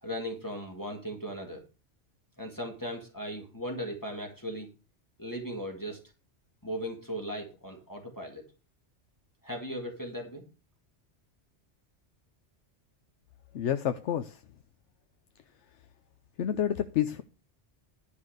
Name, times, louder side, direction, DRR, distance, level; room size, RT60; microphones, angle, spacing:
voice 1, 0.0-1.6 2.4-4.7 5.2-6.0 6.6-8.5 9.4-10.5, equal, 15° left, 2.1 m, -37 dB
voice 2, 13.5-14.4 16.4-17.2, left 10 dB, 85° left, 1.0 m, -29 dB
11.5 x 5.5 x 6.5 m
omnidirectional pair, 1.2 m